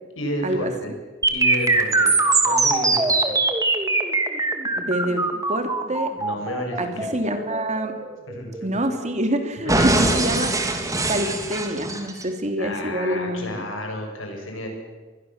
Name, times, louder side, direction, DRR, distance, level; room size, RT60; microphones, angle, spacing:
voice 1, 0.2-0.9 1.3-3.3 6.2-7.2 8.3-8.7 9.6-9.8 12.6-14.7, left 1 dB, 85° left, 3 dB, 6.5 m, -32 dB
sound 1, 1.2-9.2 9.7-12.2, right 3 dB, 15° right, 2.6 m, -22 dB
voice 2, 4.7-5.2 5.5-6.1 6.8-7.9 8.6-10.5 11.1-13.7, right 1 dB, 35° right, 6 dB, 2.9 m, -26 dB
24.5 x 21.5 x 7.3 m, 1.3 s
head